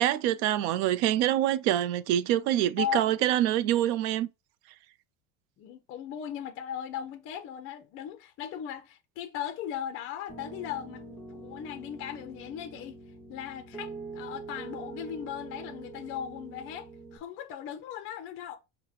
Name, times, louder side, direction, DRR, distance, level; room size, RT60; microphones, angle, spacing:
voice 1, 0.0-4.3, right 12 dB, 70° right, 0.6 m, -25 dB
voice 2, 2.8-3.2 5.6-13.0 13.3-18.6, left 9 dB, 35° left, 0.6 m, -38 dB
Piano, 10.3-17.2, right 3 dB, ahead, 0.9 m, -44 dB
5.7 x 2.2 x 4.0 m
cardioid pair, 155°, 36 cm